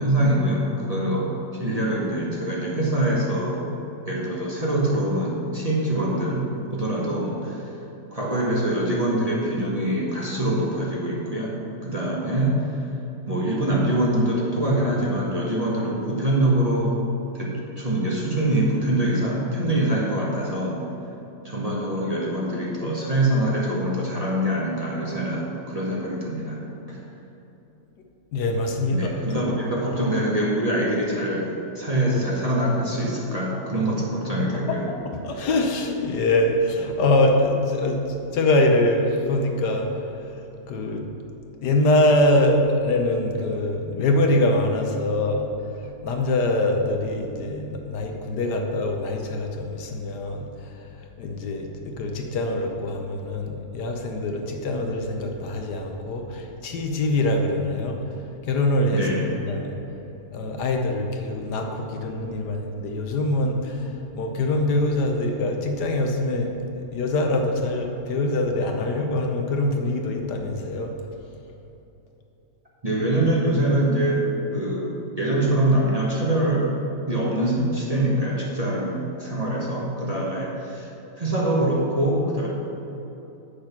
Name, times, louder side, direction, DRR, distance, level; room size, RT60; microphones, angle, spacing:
voice 1, 0.0-3.7 4.1-7.7 8.1-11.6 11.8-12.8 13.3-17.0 17.3-20.9 21.4-27.0 28.9-34.8 58.9-59.2 72.8-76.7 77.1-80.9 81.2-82.5, right 1 dB, 25° right, -5 dB, 1.2 m, -24 dB
voice 2, 28.3-29.3 34.4-40.4 40.7-41.1 41.6-45.5 45.8-59.1 59.5-59.8 60.3-70.9, left 1 dB, 70° left, 3 dB, 1.4 m, -24 dB
8.1 x 6.8 x 5.8 m, 3.0 s
omnidirectional pair, 1.9 m